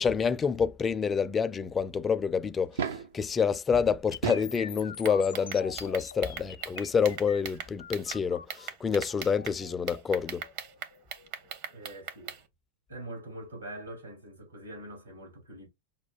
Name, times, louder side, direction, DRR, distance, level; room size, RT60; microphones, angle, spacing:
voice 1, 0.0-2.9 3.1-10.5, left 6 dB, 20° left, 0.4 m, -28 dB
sound 1, 2.6-3.2 4.0-4.6 5.9-6.0 7.8-7.9 8.1-8.2, right 7 dB, 60° right, 0.4 m, -34 dB
sound 2, 4.1-12.1, left 7 dB, 70° left, 0.6 m, -45 dB
sound 3, 5.0-8.2 8.5-9.6 9.9-12.4, right 7 dB, 45° right, 0.9 m, -39 dB
voice 2, 11.7-12.3 12.9-15.7, right 1 dB, 80° right, 2.3 m, -43 dB
5.6 x 2.2 x 2.3 m
figure-of-eight pair, 90°, 0 cm